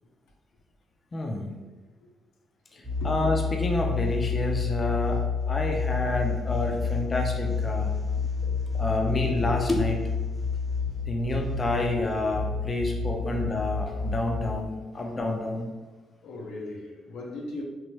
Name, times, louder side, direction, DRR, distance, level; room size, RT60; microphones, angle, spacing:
voice 1, 1.1-1.5 2.7-7.9 8.8-10.1 11.1-15.7, left 2 dB, 35° left, 2 dB, 0.4 m, -29 dB
sound 1, 2.8-14.7, left 5 dB, 35° right, 0.8 m, -29 dB
voice 2, 8.1-8.8 13.2-13.4 16.2-17.6, left 2 dB, 85° left, -1 dB, 0.5 m, -40 dB
3.0 x 2.1 x 3.0 m, 1.3 s
cardioid pair, 90°, 0 cm